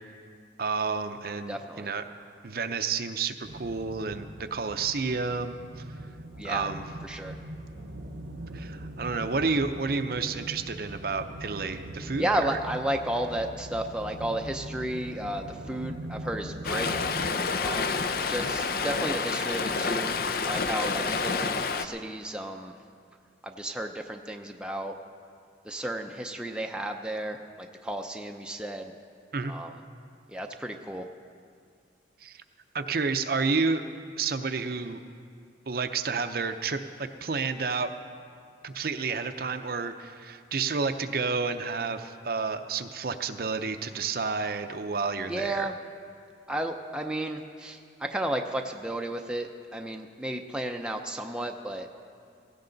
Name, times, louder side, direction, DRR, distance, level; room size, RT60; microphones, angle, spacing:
voice 1, 0.6-2.0 2.4-5.6 6.4-6.8 8.5-12.6 29.3-29.5 32.2-32.4 32.7-33.8 34.2-35.0 35.7-37.9 38.6-45.7, right 4 dB, 55° right, 8 dB, 0.6 m, -30 dB
voice 2, 1.5-1.9 6.4-6.7 7.0-7.4 12.2-17.0 17.6-20.1 20.4-22.7 23.4-24.9 25.6-28.9 29.5-29.7 30.3-31.1 45.3-45.7 46.5-51.9, right 1 dB, 5° right, 3 dB, 0.5 m, -33 dB
sound 1, 3.4-17.3, right 1 dB, 85° right, 1.0 m, -41 dB
Stream, 16.6-21.9, left 4 dB, 50° left, 0.5 m, -28 dB
16.5 x 16.5 x 4.0 m, 2.3 s
head